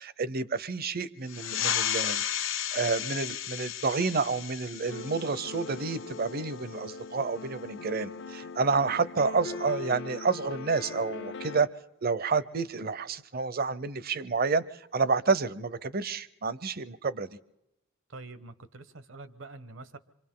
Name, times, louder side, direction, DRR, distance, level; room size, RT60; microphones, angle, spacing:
voice 1, 0.0-11.7 12.0-14.6 14.9-17.3, right 4 dB, 50° right, 0.7 m, -29 dB
sound 1, 1.3-6.4, left 10 dB, 75° left, 1.2 m, -33 dB
sound 2, 4.9-11.7, left 4 dB, 60° left, 0.7 m, -41 dB
voice 2, 18.1-20.0, right 2 dB, 70° right, 1.1 m, -45 dB
28.0 x 25.0 x 3.8 m
head